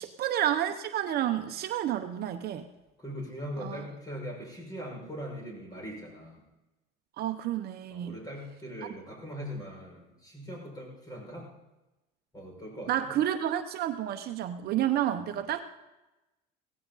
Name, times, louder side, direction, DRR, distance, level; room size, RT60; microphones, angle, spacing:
voice 1, 0.0-2.6 3.6-3.9 7.2-8.2 8.8-8.9 12.9-15.6, right 11 dB, 50° right, 7 dB, 0.9 m, -30 dB
voice 2, 3.0-6.4 7.9-11.5 12.3-13.1 15.3-15.4, equal, 20° left, -1 dB, 6.2 m, -41 dB
17.0 x 15.0 x 4.1 m, 1.0 s
cardioid pair, 125°, 20 cm